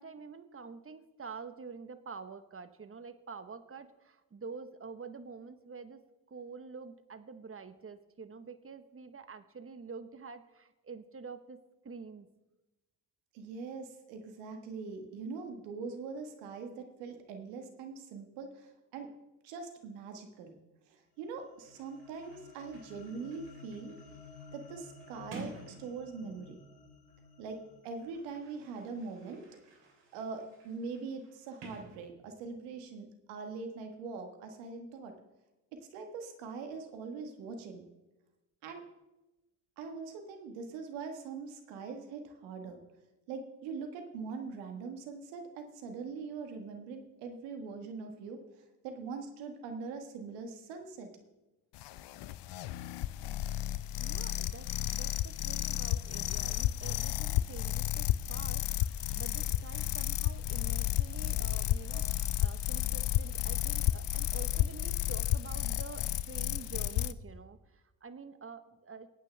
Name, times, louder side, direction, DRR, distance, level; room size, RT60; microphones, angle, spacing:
voice 1, 0.0-12.3 54.0-69.1, right 5 dB, 30° right, 11 dB, 1.2 m, -47 dB
voice 2, 13.3-19.1 19.4-20.6 20.9-24.2 24.5-26.6 27.4-27.6 27.8-29.4 30.1-35.1 35.7-37.9 38.6-38.8 39.8-42.8 43.3-48.4 48.8-51.1 61.9-62.0, right 4 dB, 85° right, 5 dB, 1.6 m, -42 dB
sound 1, 21.2-29.7, left 4 dB, 90° left, 3.3 m, -55 dB
Sliding door, 21.6-26.7 27.6-32.6, right 2 dB, 65° right, 3.4 m, -53 dB
sound 2, 51.7-67.1, left 13 dB, 65° left, 0.7 m, -32 dB
22.0 x 8.9 x 3.4 m, 1.0 s
hypercardioid pair, 45°, 46 cm